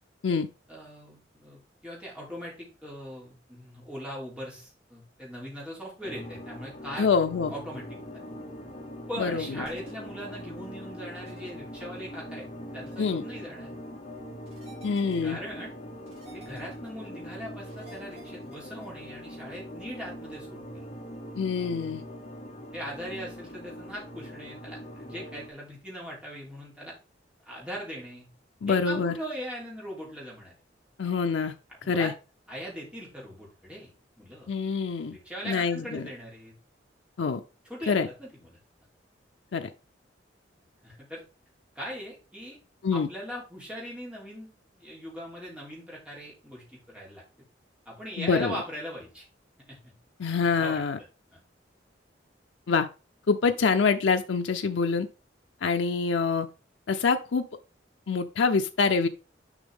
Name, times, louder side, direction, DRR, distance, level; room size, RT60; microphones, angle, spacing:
voice 1, 0.7-7.1 7.5-7.8 8.1-8.2 9.1-12.5 12.7-13.7 15.2-15.7 16.3-20.8 22.7-26.9 27.4-28.3 28.7-30.5 31.8-32.1 32.5-33.9 34.2-34.5 35.1-36.5 37.6-38.6 40.8-41.2 41.7-42.6 42.9-44.5 44.8-47.2 47.8-49.3 49.7-49.8 50.4-50.8 51.3-51.4, equal, 5° right, -5 dB, 3.2 m, -40 dB
sound 1, 6.0-25.5, equal, 40° left, 1.6 m, -42 dB
voice 2, 7.0-7.5 9.2-9.6 13.0-13.2 14.8-15.4 21.4-22.0 28.6-29.2 31.0-31.5 31.9-32.1 34.5-35.2 35.4-36.1 37.2-37.4 37.9-38.1 39.5-39.7 42.8-43.1 48.2-48.6 50.2-51.0 52.7-52.9 53.3-55.1 55.6-56.5 56.9-57.5 58.1-59.1, left 5 dB, 85° left, 7 dB, 0.5 m, -25 dB
sound 2, 9.6-9.9 11.3-11.5 12.9-13.1 14.5-15.3 16.1-16.9 17.7-18.9, right 2 dB, 35° right, 2.6 m, -53 dB
7.2 x 5.3 x 3.5 m, 0.32 s
head